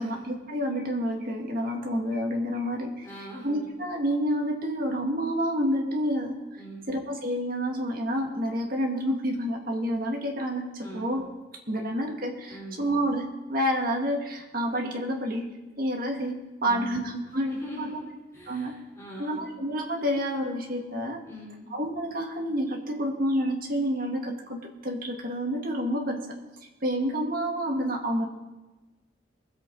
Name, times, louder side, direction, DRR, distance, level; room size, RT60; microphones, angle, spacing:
voice 1, 0.0-3.1 3.4-6.4 6.9-11.2 11.7-15.5 15.8-17.9 18.5-18.7 19.2-21.2 21.7-26.2 26.8-28.3, equal, 50° right, 1 dB, 1.9 m, -29 dB
voice 2, 3.0-3.7 6.6-6.9 10.8-11.1 12.5-13.0 16.6-18.0 18.3-19.6 21.2-21.7, equal, 15° left, -7 dB, 4.2 m, -42 dB
21.0 x 8.1 x 4.0 m, 1.1 s
head